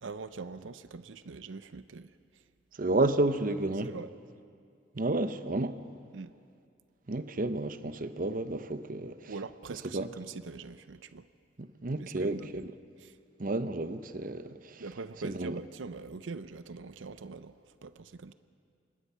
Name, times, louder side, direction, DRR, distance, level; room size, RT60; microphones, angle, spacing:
voice 1, 0.0-2.4 3.8-4.1 6.1-6.3 9.3-11.3 12.0-12.6 13.0-13.2 14.8-18.3, right 4 dB, 90° right, 0.6 m, -43 dB
voice 2, 2.8-3.9 4.9-5.8 7.1-9.3 9.9-10.1 11.6-12.7 13.4-14.8 15.2-15.6, right 2 dB, 45° right, 0.8 m, -31 dB
25.5 x 20.0 x 5.6 m
head